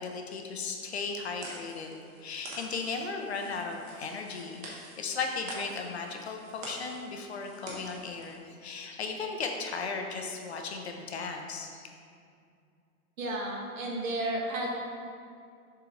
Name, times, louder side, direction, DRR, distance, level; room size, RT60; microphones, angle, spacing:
voice 1, 0.0-11.9, left 4 dB, 45° left, 3 dB, 0.6 m, -36 dB
sound 1, 0.8-8.4, right 1 dB, 25° right, 1.0 m, -47 dB
voice 2, 13.2-14.7, right 1 dB, 60° right, -2 dB, 1.6 m, -32 dB
6.9 x 3.8 x 4.9 m, 2.4 s
hypercardioid pair, 175°, 44 cm